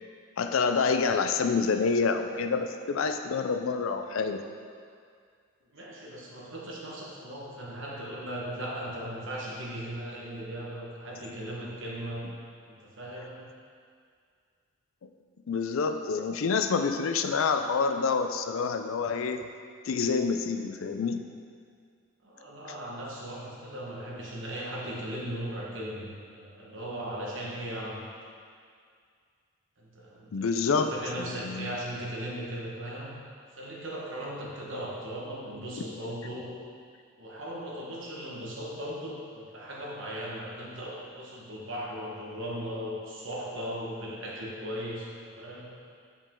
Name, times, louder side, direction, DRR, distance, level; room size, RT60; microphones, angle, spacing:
voice 1, 0.4-4.4 15.5-19.5 19.8-21.2 30.3-30.9 31.2-31.8, left 5 dB, 80° left, 7 dB, 0.4 m, -27 dB
voice 2, 5.7-12.3 12.7-13.5 22.2-28.1 29.8-33.2 33.5-36.6 37.2-45.7, equal, 65° right, -4 dB, 1.3 m, -38 dB
7.5 x 5.2 x 3.7 m, 2.2 s
head